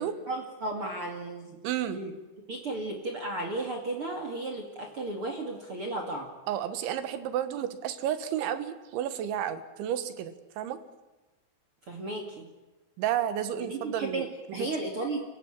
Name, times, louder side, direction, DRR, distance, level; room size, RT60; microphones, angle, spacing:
voice 1, 0.0-1.6 1.9-2.1 2.5-6.3 11.9-12.5 13.6-15.2, right 2 dB, 40° right, 3 dB, 2.3 m, -34 dB
voice 2, 1.6-2.0 6.5-10.8 13.0-14.3 14.6-14.7, right 10 dB, 85° right, 12 dB, 3.8 m, -31 dB
27.5 x 16.0 x 8.8 m, 1.1 s
omnidirectional pair, 5.3 m